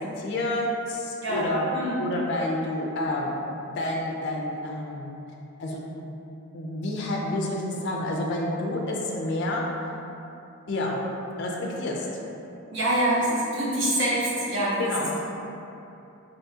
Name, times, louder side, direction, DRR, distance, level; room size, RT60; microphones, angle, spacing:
voice 1, 0.2-1.7 2.0-3.4 3.8-5.1 5.6-5.8 6.5-9.7 10.7-11.0 11.4-12.1 14.8-15.1, left 1 dB, 50° left, -1 dB, 0.4 m, -29 dB
voice 2, 1.2-2.0 12.7-15.2, right 1 dB, 55° right, -6 dB, 0.8 m, -25 dB
3.4 x 2.7 x 2.8 m, 2.8 s
head